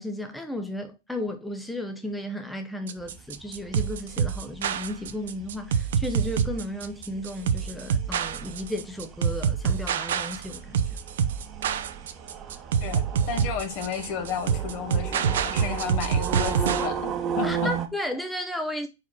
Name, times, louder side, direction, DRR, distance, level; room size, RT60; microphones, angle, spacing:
voice 1, 0.0-10.8 17.4-18.9, left 1 dB, 5° left, 0.8 m, -34 dB
sound 1, 2.9-16.9, right 7 dB, 70° right, 0.7 m, -26 dB
sound 2, 3.0-17.9, right 7 dB, 30° right, 1.1 m, -35 dB
voice 2, 12.8-17.7, left 7 dB, 50° left, 1.5 m, -33 dB
4.7 x 4.7 x 4.6 m
hypercardioid pair, 115°, 0 cm